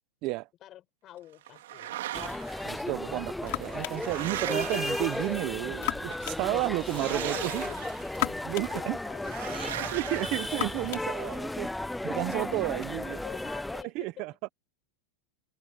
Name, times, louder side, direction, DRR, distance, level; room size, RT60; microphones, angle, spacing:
voice 1, 0.6-2.0 6.8-7.9 8.4-10.0 12.9-14.2, left 13 dB, 25° left, 5.9 m, -46 dB
sound 1, 1.5-2.7 3.5-5.7 6.8-8.2 9.2-11.1, right 14 dB, 85° right, 2.6 m, -39 dB
sound 2, 2.1-13.8, left 1 dB, 5° left, 0.3 m, -35 dB
voice 2, 2.6-7.6 8.4-9.0 9.9-11.7 12.0-13.2 13.9-14.5, right 21 dB, 40° right, 0.8 m, -32 dB
sound 3, 2.8-12.9, left 25 dB, 50° left, 3.7 m, -40 dB
supercardioid pair, 170°, 0 cm